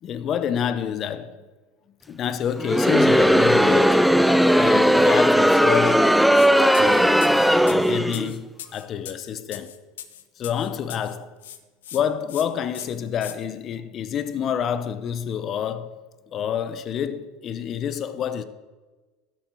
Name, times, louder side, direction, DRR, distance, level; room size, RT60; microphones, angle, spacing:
voice 1, 0.0-1.4 2.1-4.1 4.6-6.2 6.7-7.3 7.7-9.8 10.4-11.3 11.9-16.0 16.3-18.4, left 8 dB, 40° left, 0.8 m, -28 dB
Crowd, 2.6-8.3, equal, ahead, 0.4 m, -17 dB
sound 1, 6.3-6.5 6.7-11.2 11.4-12.0 12.3-12.4 12.7-13.3, left 11 dB, 85° left, 0.8 m, -39 dB
12.5 x 7.4 x 4.7 m
hypercardioid pair, 95°, 0 cm